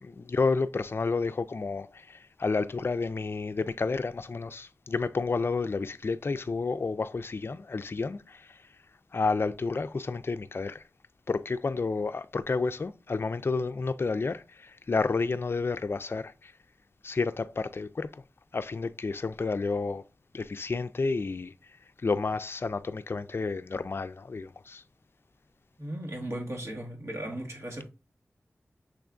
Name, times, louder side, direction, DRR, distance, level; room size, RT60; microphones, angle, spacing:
voice 1, 0.0-8.7 9.1-10.8 11.3-16.5 17.0-18.2 18.5-20.0 20.3-21.5 22.0-24.8, left 4 dB, 50° left, 0.3 m, -30 dB
voice 2, 25.8-27.9, right 1 dB, 60° right, 1.5 m, -36 dB
6.1 x 3.4 x 2.4 m
wide cardioid pair, 50°, 5 cm